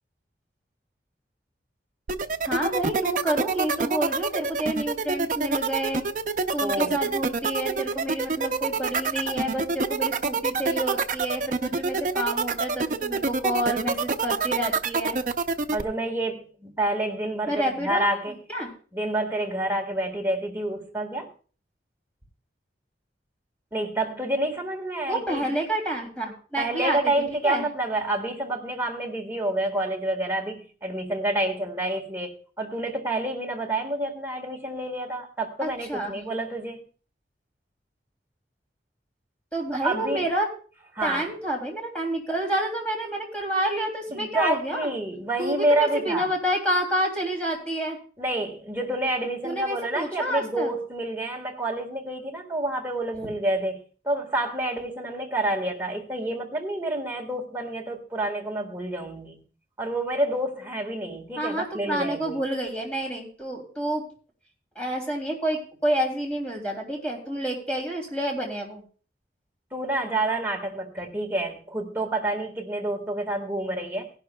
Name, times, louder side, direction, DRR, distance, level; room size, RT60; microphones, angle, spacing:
sound 1, 2.1-15.8, right 4 dB, 45° right, 0.6 m, -26 dB
voice 1, 2.4-6.0 6.5-15.2 17.5-18.1 18.5-18.7 25.1-27.0 27.3-27.6 35.6-36.2 39.5-40.5 41.0-44.9 45.4-48.0 49.4-50.7 61.4-64.0 64.7-68.8, right 1 dB, 5° left, 3.0 m, -29 dB
voice 2, 6.6-7.0 15.7-18.4 18.9-21.3 23.7-25.4 26.6-36.8 39.7-40.3 40.9-41.2 44.1-46.3 48.2-59.4 59.8-62.4 69.7-74.1, right 1 dB, 10° right, 1.6 m, -28 dB
17.5 x 11.5 x 2.3 m
head